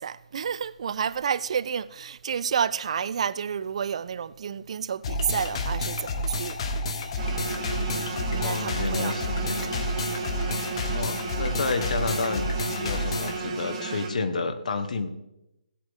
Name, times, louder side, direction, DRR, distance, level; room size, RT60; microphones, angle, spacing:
voice 1, 0.0-6.6 7.9-9.1 9.4-9.8 10.5-10.9, right 7 dB, 45° right, 0.4 m, -30 dB
sound 1, 5.0-13.4, left 1 dB, 40° left, 1.2 m, -30 dB
sound 2, 7.2-14.1, right 4 dB, 25° right, 1.7 m, -34 dB
voice 2, 8.2-9.7 10.9-12.4 12.7-15.1, left 4 dB, 60° left, 1.3 m, -30 dB
17.0 x 8.3 x 3.7 m
figure-of-eight pair, 150°, 4 cm